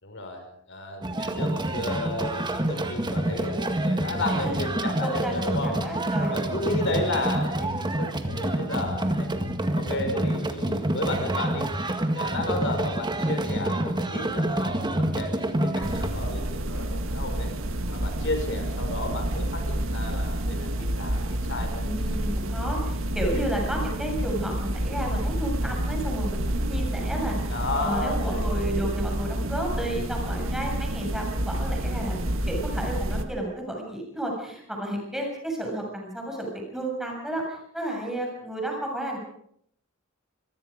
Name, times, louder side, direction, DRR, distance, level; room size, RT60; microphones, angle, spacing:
voice 1, 0.0-5.7 6.2-9.3 9.7-11.7 12.1-17.5 17.9-21.8 27.4-28.5, left 2 dB, 60° left, 5 dB, 5.7 m, -33 dB
sound 1, 1.0-16.1, right 1 dB, 20° right, 1.9 m, -27 dB
voice 2, 4.3-4.7 5.0-6.8 21.7-27.4 27.8-32.2 32.5-39.2, right 1 dB, ahead, 0 dB, 6.9 m, -32 dB
sound 2, 15.8-33.2, right 1 dB, 65° right, 2.0 m, -29 dB
25.0 x 23.0 x 5.2 m, 0.68 s
head